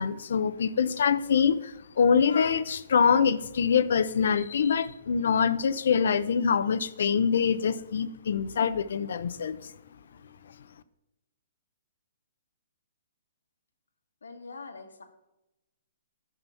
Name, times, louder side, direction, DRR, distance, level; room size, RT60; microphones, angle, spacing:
voice 1, 0.0-9.6, left 6 dB, 70° left, 14 dB, 0.7 m, -25 dB
voice 2, 14.2-15.0, left 4 dB, 90° left, 6 dB, 1.7 m, -43 dB
10.0 x 6.0 x 7.0 m, 0.92 s
hypercardioid pair, 135°, 0 cm